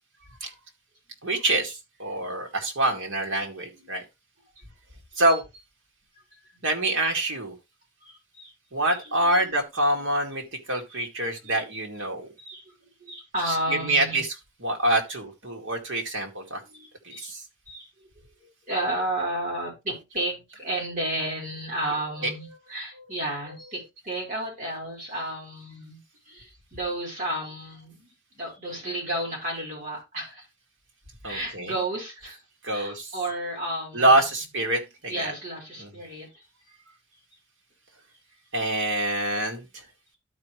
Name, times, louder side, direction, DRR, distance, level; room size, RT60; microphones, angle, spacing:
voice 1, 1.2-4.0 5.2-5.4 6.6-7.6 8.7-12.3 13.4-16.6 17.0-17.4 22.2-22.3 31.2-31.8 32.2-32.3 32.6-33.1 33.9-35.3 35.8-36.0 38.5-39.8, right 1 dB, 80° right, 2.2 m, -26 dB
voice 2, 3.2-4.0 5.2-5.4 6.3-7.1 8.0-8.5 8.8-9.7 10.1-10.5 10.9-11.0 11.4-11.7 11.9-12.1 12.4-12.7 13.0-14.2 16.4-17.3 17.7-18.1 18.4-30.4 31.2-32.4 32.7-36.8, right 1 dB, 40° right, 4.9 m, -33 dB
12.5 x 4.7 x 3.2 m
head